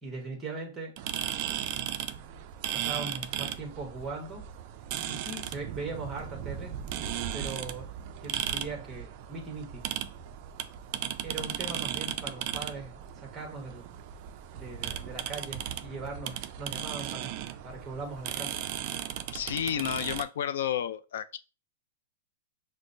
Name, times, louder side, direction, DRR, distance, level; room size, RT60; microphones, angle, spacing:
voice 1, 0.0-1.0 1.7-1.9 2.7-4.5 5.0-6.8 7.3-7.9 8.2-9.9 11.2-13.9 14.5-17.3 17.6-18.7, right 3 dB, 10° right, 1.1 m, -40 dB
sound 1, 1.0-20.2, right 10 dB, 40° right, 0.3 m, -36 dB
voice 2, 19.3-21.4, left 9 dB, 65° left, 0.4 m, -31 dB
5.9 x 2.0 x 2.6 m
hypercardioid pair, 155°, 0 cm